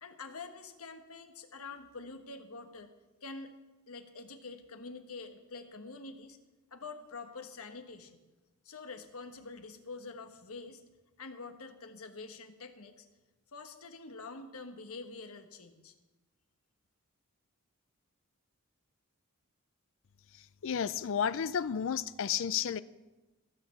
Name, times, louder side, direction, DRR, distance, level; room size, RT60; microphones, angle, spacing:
voice 1, 0.0-2.9 3.2-3.6 3.9-6.4 6.7-8.2 8.6-10.8 11.2-13.0 13.5-15.9, left 3 dB, 75° left, 6 dB, 1.2 m, -46 dB
voice 2, 20.6-22.8, left 8 dB, 60° left, 16 dB, 0.4 m, -32 dB
15.0 x 6.6 x 7.0 m, 1.1 s
head